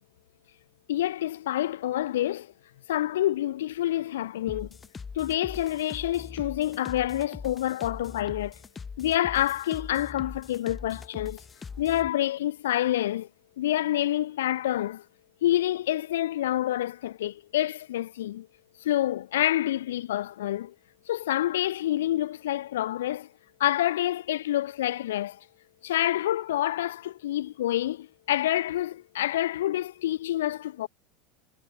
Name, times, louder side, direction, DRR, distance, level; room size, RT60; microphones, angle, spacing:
voice 1, 0.9-2.5 2.9-4.7 5.1-8.6 9.0-11.4 11.8-13.3 13.6-15.0 15.4-18.5 18.8-20.7 21.1-23.3 23.6-25.4 25.8-30.9, left 13 dB, 80° left, 1.0 m, -27 dB
sound 1, 4.5-12.1, left 5 dB, 20° left, 7.4 m, -42 dB
hypercardioid pair, 90°, 0 cm